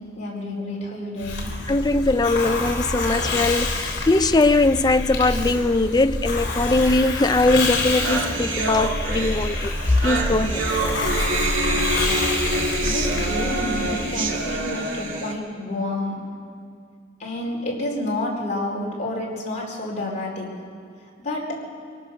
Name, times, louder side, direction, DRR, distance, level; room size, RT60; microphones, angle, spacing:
voice 1, 0.0-1.7 11.6-12.5 12.8-16.3 17.2-20.6 21.2-21.6, left 1 dB, 40° left, 4.3 m, -30 dB
Hiss, 1.2-14.7, left 2 dB, 60° left, 3.7 m, -27 dB
voice 2, 1.7-10.6, left 2 dB, 20° left, 0.5 m, -20 dB
sound 1, 7.5-7.6 7.7-15.3, right 2 dB, 80° right, 2.6 m, -26 dB
24.0 x 19.0 x 6.5 m
head